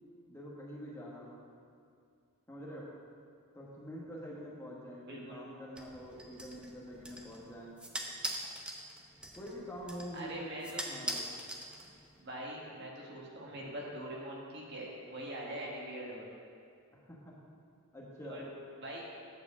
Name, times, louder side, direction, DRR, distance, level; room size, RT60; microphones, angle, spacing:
voice 1, 0.3-1.4 2.5-2.9 3.5-7.8 9.4-10.5 10.9-11.2 17.1-17.3 17.9-18.4, equal, 10° left, -5 dB, 1.2 m, -45 dB
voice 2, 5.0-5.4 10.1-11.2 12.2-16.3 18.2-18.4 18.8-19.0, right 1 dB, 50° right, -3 dB, 1.6 m, -43 dB
sound 1, 5.8-12.2, equal, 5° right, 0.6 m, -43 dB
8.4 x 4.9 x 7.1 m, 2.3 s
head